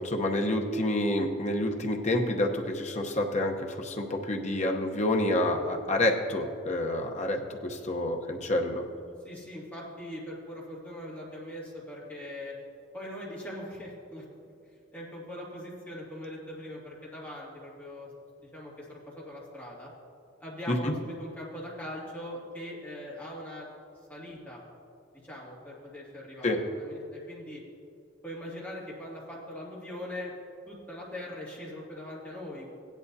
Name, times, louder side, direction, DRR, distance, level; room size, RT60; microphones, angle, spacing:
voice 1, 0.0-8.8 20.7-20.9 26.4-26.6, left 1 dB, 40° left, 2 dB, 0.9 m, -28 dB
voice 2, 9.2-12.6 12.9-14.5 14.9-18.1 18.4-19.9 20.4-23.7 24.1-24.6 25.2-27.6 28.2-30.3 30.7-32.7, left 1 dB, 10° left, -6 dB, 2.3 m, -41 dB
16.0 x 10.5 x 2.7 m, 2.5 s
head